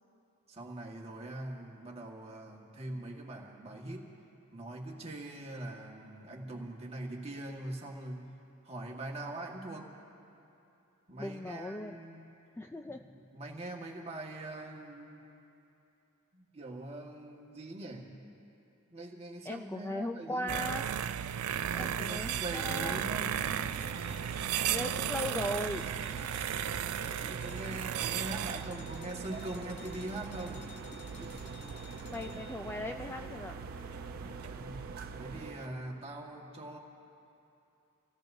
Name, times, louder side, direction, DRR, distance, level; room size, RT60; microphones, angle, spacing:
voice 1, 0.5-4.1 4.5-8.3 8.6-9.9 11.1-12.3 12.8-15.3 16.3-18.3 18.9-20.6 21.8-23.6 27.2-30.8 34.2-36.8, right 1 dB, 30° right, -1 dB, 1.6 m, -43 dB
voice 2, 11.2-12.0 12.6-13.0 19.5-20.9 21.7-23.0 24.6-25.9 30.9-31.5 32.1-33.6, left 1 dB, 10° left, 4 dB, 0.3 m, -38 dB
sound 1, 20.5-35.5, right 9 dB, 80° right, 0.4 m, -36 dB
sound 2, 22.9-35.7, right 3 dB, 45° right, 0.7 m, -46 dB
sound 3, 23.7-32.7, left 8 dB, 55° left, 0.6 m, -55 dB
26.5 x 16.5 x 2.7 m, 2.9 s
head